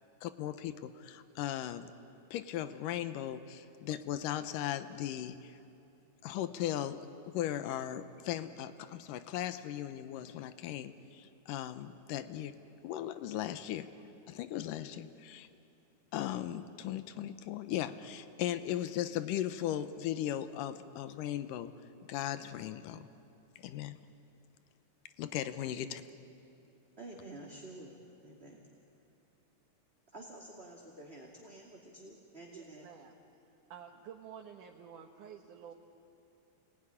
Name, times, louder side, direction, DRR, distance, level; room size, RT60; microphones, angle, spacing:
voice 1, 0.2-1.9 2.3-5.6 6.2-12.6 12.8-13.9 14.3-15.5 16.1-21.7 22.1-23.1 23.6-24.0 25.2-26.0, left 11 dB, 90° left, 11 dB, 2.5 m, -37 dB
voice 2, 27.0-28.0 28.2-28.6 30.1-32.9, right 2 dB, 20° right, -2 dB, 2.3 m, -49 dB
voice 3, 32.5-33.1 33.7-35.7, right 8 dB, 75° right, 1 dB, 2.8 m, -50 dB
28.5 x 20.5 x 10.0 m, 2.7 s
omnidirectional pair, 3.7 m